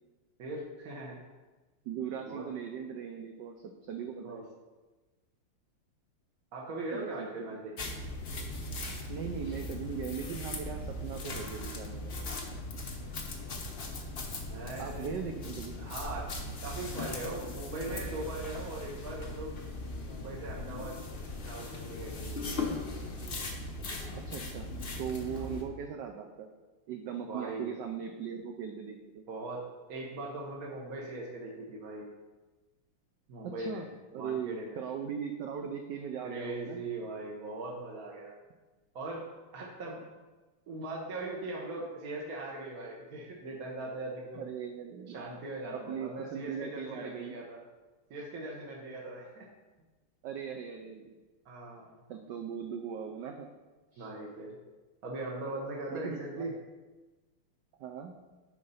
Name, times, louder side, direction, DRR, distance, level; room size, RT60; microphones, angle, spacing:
voice 1, 0.4-1.2 2.2-2.5 4.2-4.4 6.5-7.9 14.5-15.1 15.8-16.3 16.6-19.6 20.1-21.0 21.4-22.7 25.3-25.6 27.3-27.7 29.3-32.1 33.3-33.8 34.1-34.8 36.2-38.3 38.9-39.3 39.5-40.0 40.7-44.5 45.1-47.6 48.1-49.5 51.4-51.9 54.0-54.6 55.0-56.5, right 2 dB, 55° right, -3 dB, 1.2 m, -40 dB
voice 2, 1.8-4.4 6.9-7.6 9.1-12.1 14.8-15.8 24.3-24.7 25.0-26.5 26.9-29.2 33.4-33.9 34.1-36.8 44.3-45.3 45.7-47.3 50.2-51.2 52.1-53.5 53.9-54.1 55.9-56.5 57.8-58.1, right 7 dB, 75° right, 4 dB, 1.0 m, -39 dB
sound 1, 7.8-25.6, left 2 dB, 50° left, 0.6 m, -39 dB
9.6 x 3.9 x 5.5 m, 1.2 s
omnidirectional pair, 2.3 m